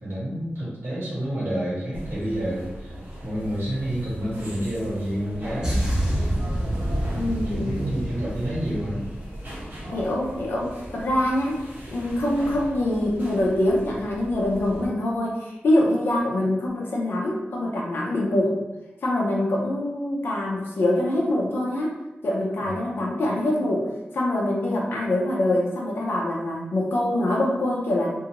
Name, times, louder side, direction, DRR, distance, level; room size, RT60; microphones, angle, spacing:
voice 1, 0.0-2.9 3.2-5.8 7.4-9.0 22.6-22.9, equal, 70° right, -8 dB, 1.4 m, -29 dB
sound 1, 1.9-14.9, equal, 55° right, 0.9 m, -39 dB
sound 2, 5.6-10.2 10.4-10.7, equal, 15° right, 0.9 m, -28 dB
voice 2, 7.1-7.9 8.2-8.3 9.9-18.6 19.0-22.0 22.2-28.1, left 1 dB, 65° left, -3 dB, 0.5 m, -24 dB
2.6 x 2.5 x 2.9 m, 1.0 s
wide cardioid pair, 145°, 4 cm